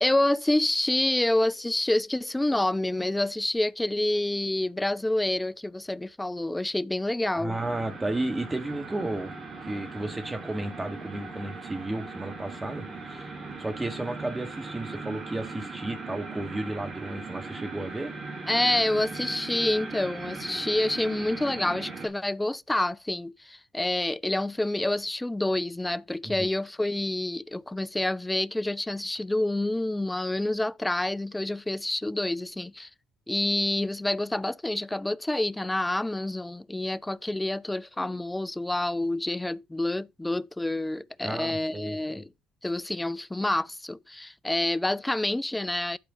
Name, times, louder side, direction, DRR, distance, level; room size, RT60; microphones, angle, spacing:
voice 1, 0.0-7.6 18.5-32.9 33.3-42.3 42.6-46.0, left 1 dB, 10° left, 0.4 m, -28 dB
voice 2, 7.4-9.3 9.6-13.3 13.6-18.1 26.2-26.5 41.2-42.2, right 2 dB, 20° right, 2.1 m, -33 dB
sound 1, 7.5-22.1, right 3 dB, 45° right, 2.8 m, -39 dB
11.0 x 4.8 x 4.0 m
hypercardioid pair, 50°, 0 cm